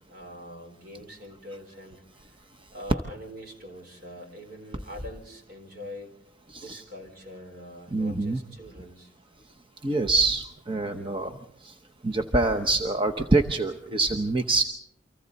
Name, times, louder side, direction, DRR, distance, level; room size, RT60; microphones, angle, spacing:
voice 1, 0.1-2.4 2.7-6.1 6.6-9.1, left 1 dB, 55° right, 4 dB, 4.2 m, -43 dB
voice 2, 7.9-8.4 9.8-11.4 11.6-11.7 12.0-14.6, right 2 dB, 30° right, 5 dB, 0.9 m, -25 dB
30.0 x 25.0 x 4.1 m, 0.73 s
head